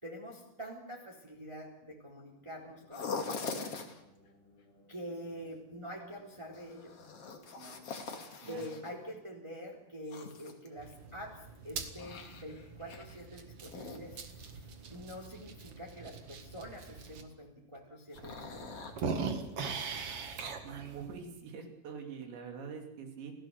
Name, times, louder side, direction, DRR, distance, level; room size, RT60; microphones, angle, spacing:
voice 1, 0.0-3.7 4.9-6.9 7.5-7.8 8.5-14.2 14.9-18.8, equal, 10° right, -1 dB, 2.6 m, -46 dB
sound 1, 2.2-9.8, left 2 dB, 85° left, 7.9 m, -64 dB
sound 2, 2.9-4.0 6.5-8.9 10.1-11.1 11.5-13.3 13.6-14.7 18.1-19.5 19.9-20.0 20.5-20.6, left 4 dB, 40° left, 2.5 m, -43 dB
sound 3, 10.8-17.2 17.8-17.9 18.2-21.2, right 5 dB, 55° right, 1.6 m, -42 dB
voice 2, 20.6-23.3, right 6 dB, 70° right, 2 dB, 5.3 m, -44 dB
29.0 x 16.5 x 6.8 m, 0.83 s
omnidirectional pair, 5.4 m